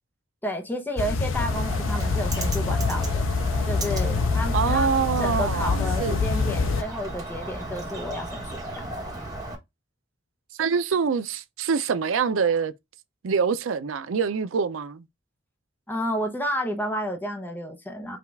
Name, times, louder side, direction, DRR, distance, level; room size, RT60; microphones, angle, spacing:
voice 1, 0.4-3.2 3.7-4.9 5.2-8.9 15.9-18.2, equal, 10° left, 0.7 m, -31 dB
sound 1, 1.0-6.8, left 4 dB, 75° left, 0.5 m, -25 dB
Bird, 1.3-9.6, right 2 dB, 20° right, 1.3 m, -35 dB
voice 2, 4.5-6.2 10.6-12.7 13.2-15.1, right 6 dB, 75° right, 0.5 m, -25 dB
5.0 x 2.4 x 3.3 m
head